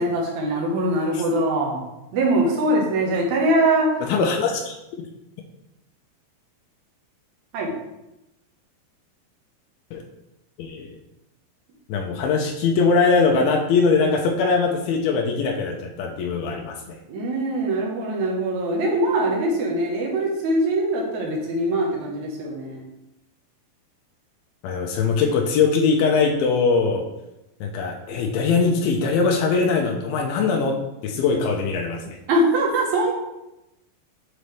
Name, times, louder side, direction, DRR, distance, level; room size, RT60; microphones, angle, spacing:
voice 1, 0.0-1.8 2.1-4.0 7.5-7.7 17.1-22.8 32.3-33.1, right 1 dB, 65° right, -2 dB, 2.3 m, -22 dB
voice 2, 4.0-4.8 9.9-10.0 10.6-10.9 11.9-17.0 24.6-27.1 27.6-32.2, left 4 dB, 85° left, 1 dB, 2.5 m, -21 dB
7.3 x 4.1 x 3.4 m, 0.93 s
omnidirectional pair, 4.2 m